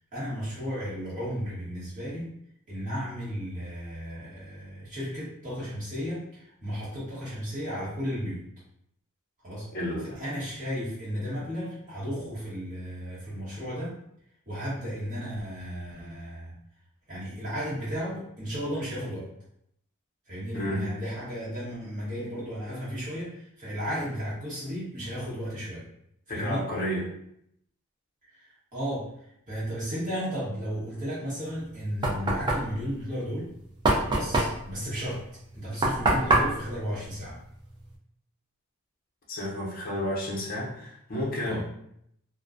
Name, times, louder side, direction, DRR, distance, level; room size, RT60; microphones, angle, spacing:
voice 1, 0.1-2.3 2.7-8.5 9.4-9.7 10.2-14.0 14.5-16.5 17.1-19.3 20.3-25.9 26.3-26.6 28.3-29.1 29.5-33.5 34.0-35.2 35.5-37.4 41.4-41.6, equal, 35° right, -9 dB, 1.1 m, -34 dB
voice 2, 9.7-10.2 20.5-20.8 26.3-27.1 39.3-41.6, left 1 dB, 40° left, -3 dB, 0.6 m, -31 dB
Knock, 31.5-37.9, right 2 dB, 20° right, 0.3 m, -27 dB
2.3 x 2.1 x 2.5 m, 0.72 s
head